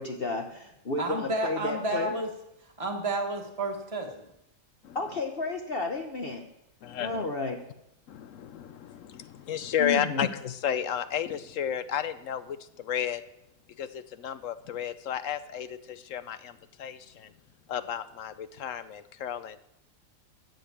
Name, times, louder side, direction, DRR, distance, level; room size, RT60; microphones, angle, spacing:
voice 1, 0.0-2.1 4.9-6.4 7.0-7.6 9.8-10.2, left 3 dB, 45° left, 4 dB, 1.2 m, -32 dB
voice 2, 1.0-2.3 2.8-4.2, right 2 dB, 25° right, 1 dB, 1.7 m, -31 dB
voice 3, 6.8-7.3 8.1-13.2 13.8-17.3 17.7-19.6, left 9 dB, 65° left, 13 dB, 1.0 m, -33 dB
13.0 x 6.5 x 8.5 m, 0.84 s
omnidirectional pair, 1.5 m